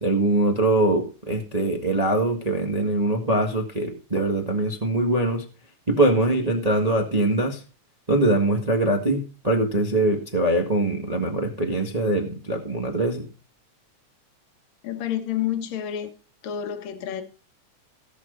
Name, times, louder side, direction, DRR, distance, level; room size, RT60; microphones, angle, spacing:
voice 1, 0.0-5.4 5.9-7.6 8.1-13.3, right 2 dB, 20° right, 2 dB, 1.0 m, -23 dB
voice 2, 14.8-16.1 16.4-17.2, left 10 dB, 65° left, 7 dB, 2.5 m, -29 dB
18.0 x 6.7 x 3.9 m, 0.36 s
omnidirectional pair, 3.5 m